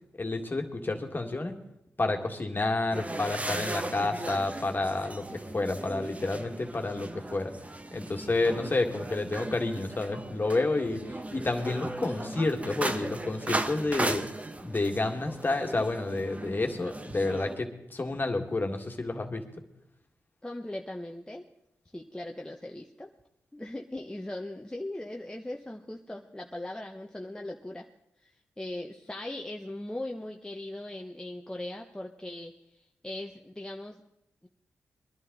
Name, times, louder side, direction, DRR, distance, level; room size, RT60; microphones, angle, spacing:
voice 1, 0.2-1.6 2.0-7.5 7.9-11.0 11.3-14.3 14.6-19.4, left 2 dB, 35° left, 4 dB, 2.0 m, -30 dB
sound 1, 2.9-17.6, right 2 dB, 25° right, 1.1 m, -37 dB
voice 2, 20.4-21.4 21.9-23.1 23.5-27.9 28.2-28.3 28.6-34.0 34.4-34.5, left 1 dB, 15° left, 1 dB, 1.1 m, -39 dB
21.5 x 11.0 x 4.0 m, 0.81 s
supercardioid pair, 40°, 6 cm